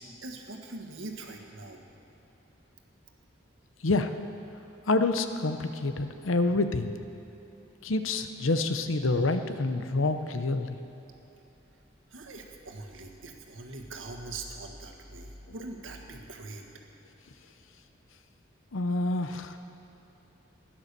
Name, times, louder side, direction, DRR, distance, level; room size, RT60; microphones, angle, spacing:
voice 1, 0.0-1.8 12.1-16.6, right 2 dB, 85° right, 3 dB, 1.6 m, -42 dB
voice 2, 4.9-6.9 7.8-10.8 18.7-19.6, left 2 dB, 90° left, 8 dB, 0.8 m, -27 dB
16.5 x 10.5 x 6.8 m, 3.0 s
head